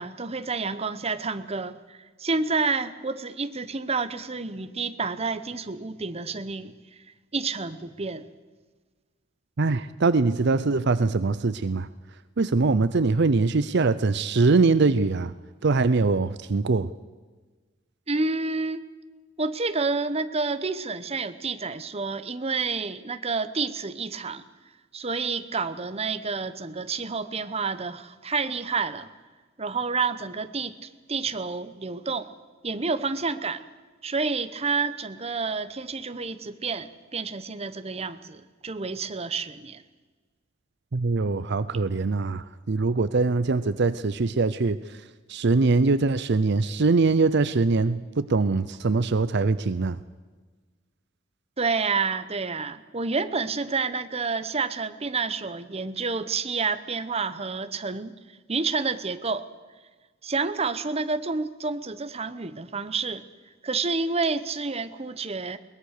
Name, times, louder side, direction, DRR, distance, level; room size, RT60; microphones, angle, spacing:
voice 1, 0.0-6.7 7.3-8.2 18.1-18.8 19.4-24.4 24.9-29.1 29.6-32.3 32.6-33.6 34.0-39.8 51.6-58.1 58.5-59.4 60.2-63.2 63.6-65.6, right 4 dB, 30° right, 11 dB, 1.0 m, -29 dB
voice 2, 9.6-11.9 12.4-15.3 15.6-16.9 40.9-45.0 45.3-50.0, right 3 dB, 60° right, 14 dB, 0.6 m, -23 dB
22.0 x 20.0 x 6.7 m, 1.4 s
head